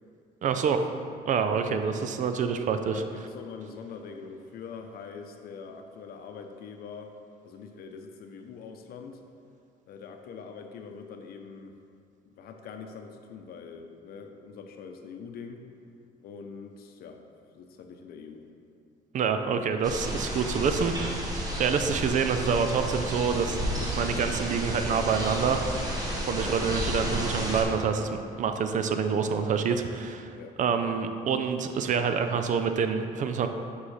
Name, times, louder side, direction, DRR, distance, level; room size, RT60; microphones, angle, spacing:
voice 1, 0.4-0.8 1.3-3.0 19.1-25.6 26.2-33.5, right 6 dB, 50° right, 7 dB, 0.5 m, -27 dB
voice 2, 2.8-7.1 7.4-9.2 9.9-11.8 12.3-15.6 16.2-17.2 17.5-18.5 26.4-26.6 30.3-30.6, left 5 dB, 65° left, 5 dB, 0.7 m, -43 dB
sound 1, 19.8-27.6, equal, 20° right, 1.4 m, -31 dB
8.4 x 5.5 x 3.3 m, 2.3 s
cardioid pair, 110°, 17 cm